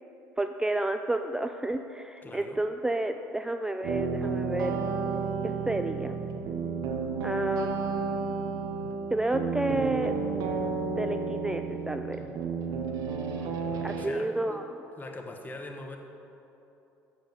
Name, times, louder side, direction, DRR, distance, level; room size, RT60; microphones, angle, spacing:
voice 1, 0.4-4.8 5.4-6.2 7.2-7.8 9.1-10.1 11.0-12.2 13.8-14.6, right 2 dB, 10° right, 7 dB, 0.4 m, -30 dB
voice 2, 2.2-2.6 13.9-14.6 15.0-16.0, left 2 dB, 25° left, 4 dB, 1.3 m, -42 dB
sound 1, 3.8-14.1, right 5 dB, 70° right, 0.9 m, -32 dB
7.6 x 6.9 x 7.2 m, 2.9 s
supercardioid pair, 70°, 7 cm